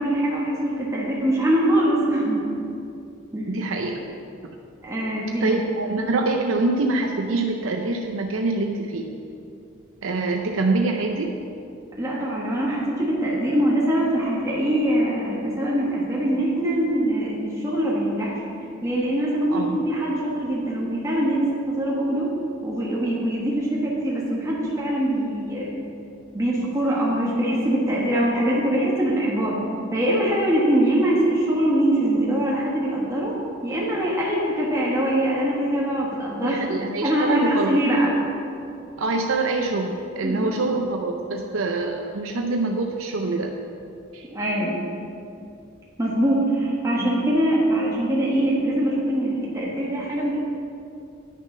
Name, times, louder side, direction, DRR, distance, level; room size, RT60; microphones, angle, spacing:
voice 1, 0.0-2.4 3.3-3.6 4.8-5.6 12.0-18.3 18.8-22.3 22.6-25.8 26.3-29.5 29.9-33.3 33.6-36.6 37.0-38.2 40.2-40.6 44.3-44.8 46.0-50.4, right 1 dB, 15° right, -5 dB, 1.3 m, -23 dB
voice 2, 3.5-4.0 5.4-9.1 10.0-11.3 19.5-19.8 36.4-37.8 39.0-43.5 44.1-44.3 47.0-47.1, right 3 dB, 85° right, 2 dB, 0.6 m, -25 dB
9.4 x 6.5 x 5.4 m, 2.6 s
head